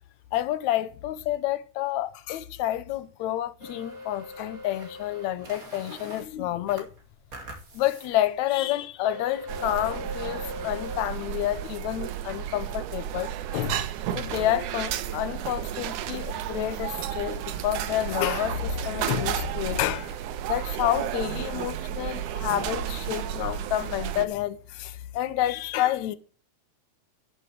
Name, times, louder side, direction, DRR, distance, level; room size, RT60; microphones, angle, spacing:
voice 1, 0.3-6.9 7.7-13.8 14.2-20.2 20.5-26.2, left 13 dB, 75° left, 2.0 m, -29 dB
Scanner Init-edit, 3.6-6.3 6.7-8.1 8.5-8.6 9.0-11.0, left 2 dB, 30° right, 2.4 m, -41 dB
sound 1, 9.5-24.3, right 11 dB, 90° right, 2.3 m, -32 dB
11.5 x 5.8 x 7.6 m
omnidirectional pair, 3.4 m